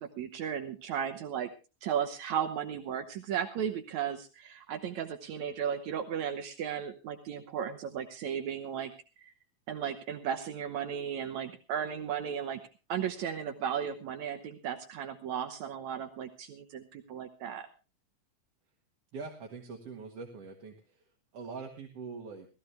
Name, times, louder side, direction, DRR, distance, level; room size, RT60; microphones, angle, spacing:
voice 1, 0.0-1.5 1.8-8.9 9.2-9.3 9.7-12.6 12.9-17.7, right 8 dB, 75° right, 6 dB, 2.3 m, -35 dB
voice 2, 19.1-21.1 21.3-22.5, right 4 dB, 55° right, 1 dB, 2.6 m, -43 dB
18.0 x 14.5 x 3.4 m, 0.33 s
omnidirectional pair, 3.4 m